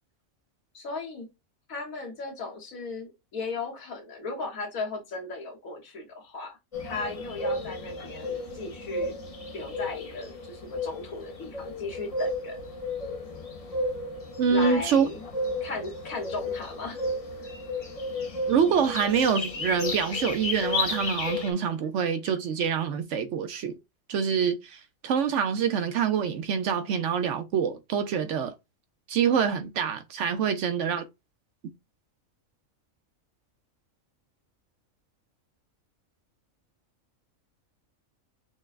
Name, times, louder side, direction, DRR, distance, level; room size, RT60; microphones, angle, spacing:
voice 1, 0.7-1.3 1.7-6.6 6.8-9.2 9.5-12.6 14.5-15.3 15.6-17.0, left 3 dB, 80° left, 1.8 m, -36 dB
sound 1, 6.7-21.5, left 2 dB, 35° left, 0.6 m, -33 dB
voice 2, 14.4-15.1 18.5-23.7 24.1-28.5 29.1-31.0, right 7 dB, 65° right, 0.9 m, -26 dB
6.1 x 2.2 x 2.4 m
omnidirectional pair, 1.4 m